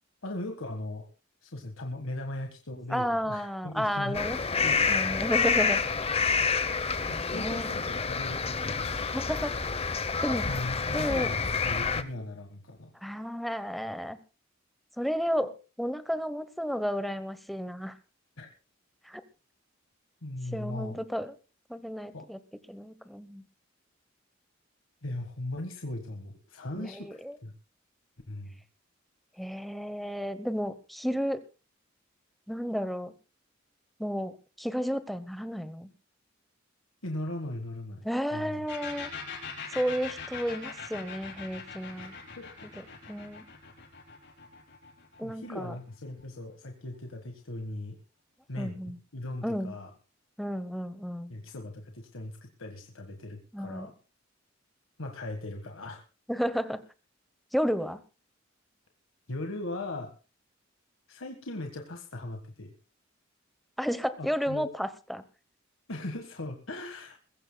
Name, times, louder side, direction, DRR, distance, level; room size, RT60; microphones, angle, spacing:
voice 1, 0.2-1.1 1.4-4.2 4.6-5.2 7.1-9.3 10.5-12.9 18.4-18.5 20.2-21.0 22.1-22.3 25.0-27.5 28.3-28.6 37.0-38.1 38.3-38.6 42.0-42.8 45.2-48.0 48.5-49.9 51.3-53.9 55.0-56.0 59.3-60.1 61.1-62.7 64.2-64.7 65.9-67.2, left 1 dB, 85° left, 4 dB, 1.6 m, -39 dB
voice 2, 2.9-5.8 7.1-7.7 9.1-9.6 10.2-10.5 10.9-11.3 13.0-14.2 15.0-17.9 19.0-19.2 20.5-21.3 21.7-22.4 22.7-23.4 26.7-27.4 29.4-31.4 32.5-33.1 34.0-35.9 38.0-39.1 39.7-42.1 43.1-43.4 45.2-45.8 48.6-49.0 49.4-49.7 50.4-51.3 53.5-53.9 56.3-56.8 57.5-58.0 63.8-65.2, equal, ahead, 12 dB, 1.0 m, -32 dB
sound 1, 4.1-12.0, left 5 dB, 30° left, 0.8 m, -28 dB
sound 2, 38.7-46.2, left 6 dB, 60° left, 4.5 m, -42 dB
22.0 x 15.5 x 2.3 m, 0.32 s
head